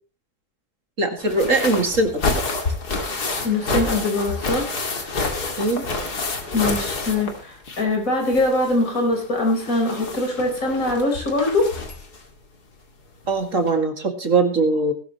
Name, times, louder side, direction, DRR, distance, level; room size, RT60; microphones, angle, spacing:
voice 1, 1.0-2.4 5.6-5.9 13.3-14.9, right 3 dB, 55° right, 5 dB, 2.7 m, -21 dB
sound 1, 1.2-7.9 8.2-12.2 13.2-13.3 13.7-13.8, left 3 dB, 85° left, 3.0 m, -28 dB
voice 2, 3.4-4.7 6.5-11.7, left 2 dB, 60° left, 1 dB, 5.1 m, -22 dB
20.0 x 12.5 x 3.1 m, 0.35 s
omnidirectional pair, 1.6 m